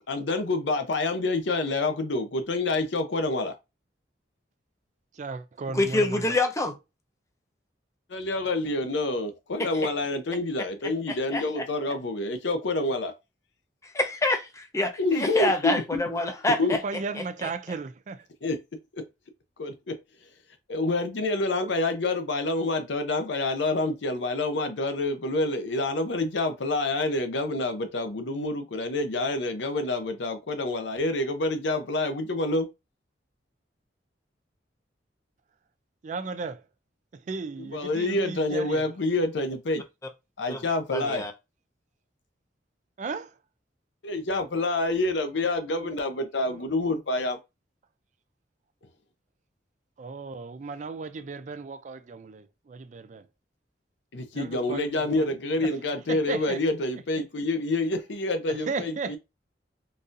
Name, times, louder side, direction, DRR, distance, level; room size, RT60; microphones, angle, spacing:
voice 1, 0.1-3.5 8.1-13.1 15.0-16.0 16.6-16.8 18.4-18.6 18.9-19.0 19.6-20.3 20.7-32.7 37.6-39.8 40.4-41.2 44.0-47.4 54.1-59.2, left 2 dB, 80° left, 0.6 m, -27 dB
voice 2, 5.1-6.4 16.6-18.3 36.0-36.6 37.1-38.8 43.0-43.4 45.8-45.9 46.5-46.6 50.0-53.3 54.3-55.3 55.6-55.7 56.1-56.6 58.5-59.2, right 4 dB, 40° right, 0.3 m, -35 dB
voice 3, 5.7-6.8 9.6-9.7 11.1-11.4 13.8-16.8 40.5-40.6 40.9-41.3, left 2 dB, 15° left, 0.5 m, -26 dB
4.0 x 2.6 x 2.5 m
head